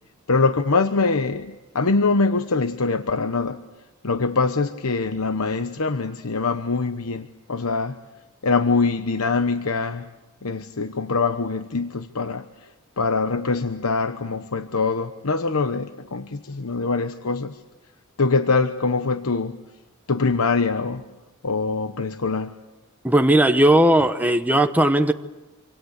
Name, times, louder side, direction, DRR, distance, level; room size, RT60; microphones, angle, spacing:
voice 1, 0.3-3.6 4.0-8.0 8.4-10.1 10.4-12.7 13.0-17.6 18.2-19.6 20.1-21.1 21.4-22.6, left 4 dB, 80° left, 9 dB, 1.0 m, -23 dB
voice 2, 23.0-25.1, right 1 dB, 10° right, 7 dB, 0.9 m, -17 dB
26.5 x 26.0 x 8.2 m, 1.1 s
head